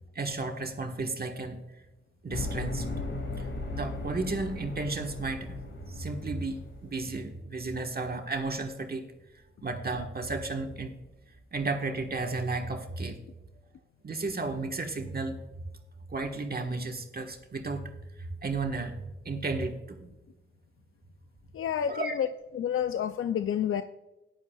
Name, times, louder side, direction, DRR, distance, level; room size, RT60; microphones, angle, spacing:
voice 1, 0.1-1.6 2.2-2.9 3.4-5.6 5.8-9.1 9.6-10.9 11.5-13.2 14.0-15.4 16.1-17.9 18.2-18.9 19.2-20.1 21.9-22.1, right 3 dB, 50° right, 3 dB, 1.4 m, -33 dB
sound 1, 2.3-7.1, left 2 dB, 70° left, 2.1 m, -37 dB
voice 2, 21.5-22.3 22.5-23.8, left 9 dB, 85° left, 10 dB, 0.4 m, -29 dB
14.5 x 11.0 x 2.3 m, 1.1 s
wide cardioid pair, 80°, 21 cm